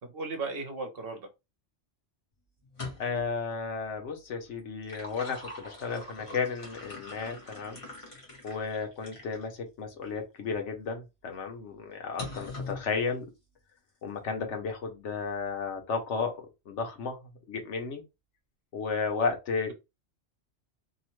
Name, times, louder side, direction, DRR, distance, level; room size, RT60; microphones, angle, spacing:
voice 1, 0.0-1.3, right 3 dB, 60° right, 0.9 m, -36 dB
sound 1, 2.6-3.3 4.6-9.4 10.1-10.2 12.2-12.8, left 2 dB, 30° left, 1.0 m, -43 dB
voice 2, 3.0-7.8 8.4-13.3 14.0-17.2 17.5-18.0 18.7-19.7, left 5 dB, 85° left, 1.1 m, -33 dB
2.9 x 2.1 x 3.0 m
omnidirectional pair, 1.2 m